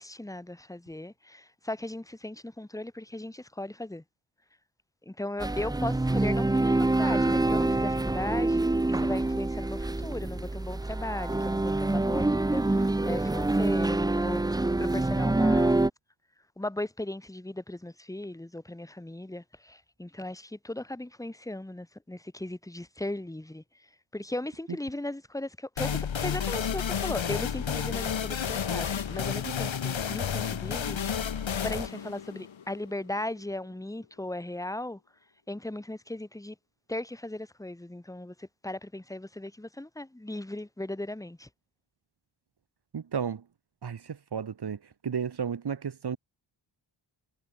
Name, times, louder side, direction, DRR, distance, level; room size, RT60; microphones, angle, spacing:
voice 1, 0.0-4.0 5.0-15.9 16.6-35.0 35.5-36.5 36.9-41.5, left 1 dB, 5° left, 1.6 m, -37 dB
sound 1, 5.4-15.9, right 2 dB, 10° right, 0.5 m, -26 dB
sound 2, 25.8-33.2, left 7 dB, 90° left, 3.4 m, -31 dB
voice 2, 42.9-43.4 43.8-44.8 45.0-46.2, right 7 dB, 60° right, 1.9 m, -33 dB
wide cardioid pair, 135°, 45 cm